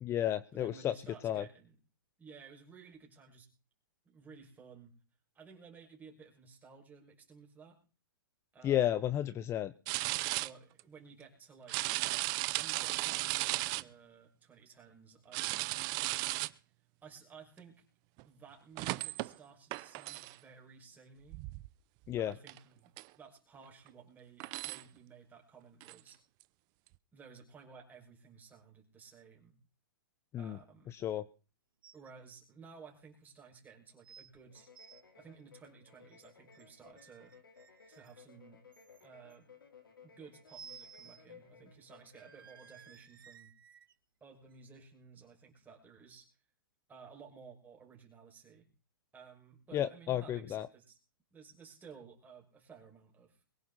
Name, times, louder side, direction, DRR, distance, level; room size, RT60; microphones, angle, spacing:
voice 1, 0.0-0.9 1.2-1.4 8.6-9.7 22.1-22.3 30.3-30.6 30.9-31.2 49.7-50.7, left 11 dB, 25° left, 16 dB, 0.7 m, -32 dB
voice 2, 0.5-1.7 2.2-3.5 4.0-4.9 5.3-7.8 8.5-9.1 10.4-11.9 12.5-15.8 17.0-17.8 18.2-21.5 22.2-26.2 27.1-29.6 30.4-31.0 31.9-34.7 35.1-37.3 37.9-38.6 39.0-39.5 40.0-43.5 44.2-46.3 46.9-48.7 49.1-51.0 51.3-53.4, right 5 dB, 15° right, 1 dB, 6.1 m, -56 dB
sound 1, 9.9-10.5 10.8-10.9 11.7-13.8 15.3-16.5 18.2-18.3 18.8-19.3 19.7-20.4 21.3-21.7 22.1-22.2 22.5-22.6 23.0-23.1 23.9-24.0 24.4-24.8 25.8-25.9 26.4-26.5, right 23 dB, 35° right, 0.7 m, -35 dB
sound 2, 31.8-32.1 32.4-32.5 33.2-33.3 34.0-34.3 34.6-35.0 36.1-36.6 37.0-38.2 38.7-39.3 40.5-41.2 41.6-41.7 42.1-43.9 44.5-44.6, right 6 dB, 80° right, 1.6 m, -56 dB
sound 3, 34.5-43.1, left 6 dB, 90° left, 4.1 m, -60 dB
23.0 x 10.5 x 4.2 m, 0.36 s
hypercardioid pair, 125°, 11 cm